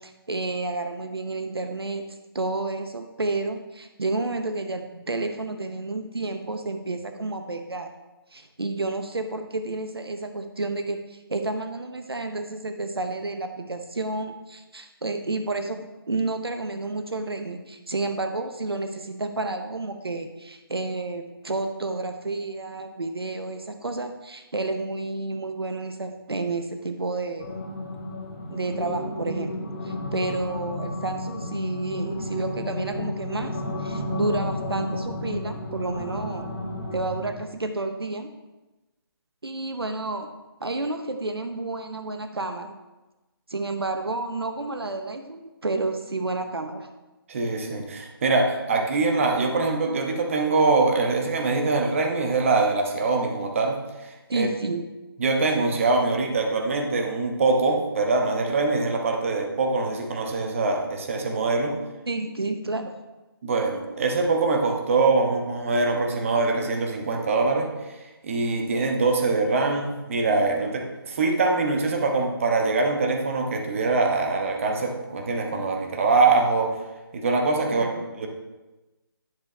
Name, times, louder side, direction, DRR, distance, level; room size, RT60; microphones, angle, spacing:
voice 1, 0.0-7.9 8.3-27.6 28.5-36.5 36.9-38.3 39.4-40.3 40.6-42.8 43.5-46.9 54.3-54.9 62.1-63.0 77.7-78.0, right 2 dB, 75° right, 7 dB, 0.8 m, -30 dB
sound 1, 27.4-37.3, left 1 dB, 20° left, 1.6 m, -32 dB
voice 2, 47.3-54.5 55.2-61.8 63.4-68.0 68.2-76.8 77.1-78.3, right 3 dB, 30° right, 3 dB, 1.0 m, -23 dB
10.5 x 6.3 x 3.4 m, 1.1 s
figure-of-eight pair, 150°, 13 cm